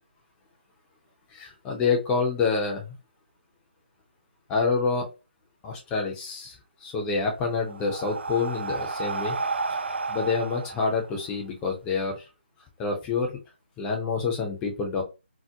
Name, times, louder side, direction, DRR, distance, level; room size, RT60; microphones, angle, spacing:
voice 1, 1.3-3.0 4.5-5.0 5.6-9.4 9.7-9.8 10.1-12.3 12.8-13.4 13.8-15.0, left 4 dB, 15° left, 1 dB, 0.6 m, -27 dB
Breathing, 7.1-11.8, right 4 dB, 75° right, 0.3 m, -32 dB
2.9 x 2.0 x 3.3 m, 0.28 s
figure-of-eight pair, 155°, 6 cm